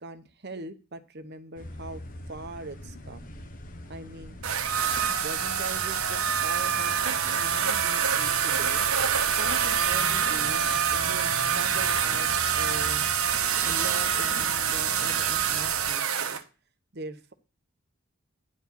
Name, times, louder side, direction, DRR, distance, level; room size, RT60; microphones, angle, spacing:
voice 1, 0.0-2.0 2.3-3.3 3.9-4.4 5.1-8.9 9.4-13.1 13.6-16.4 16.9-17.3, right 2 dB, 45° right, 9 dB, 0.9 m, -41 dB
sound 1, 1.6-15.9, left 1 dB, 35° left, 0.9 m, -43 dB
sound 2, 4.4-16.4, right 8 dB, 75° right, 1.1 m, -26 dB
10.5 x 4.7 x 7.0 m, 0.34 s
head